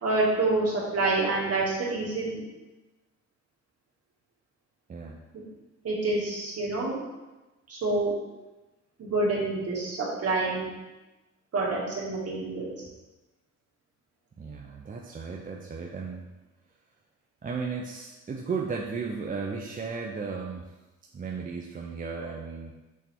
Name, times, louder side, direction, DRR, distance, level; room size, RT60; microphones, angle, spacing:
voice 1, 0.0-2.4 5.3-5.4 5.8-7.0 7.7-8.1 9.0-10.7 11.5-12.7, right 2 dB, 55° right, -4 dB, 2.1 m, -27 dB
voice 2, 4.9-5.2 14.4-16.2 17.4-20.7 21.1-22.7, right 5 dB, 30° right, -1 dB, 0.6 m, -35 dB
6.3 x 3.5 x 4.5 m, 1.1 s
cardioid pair, 90°, 30 cm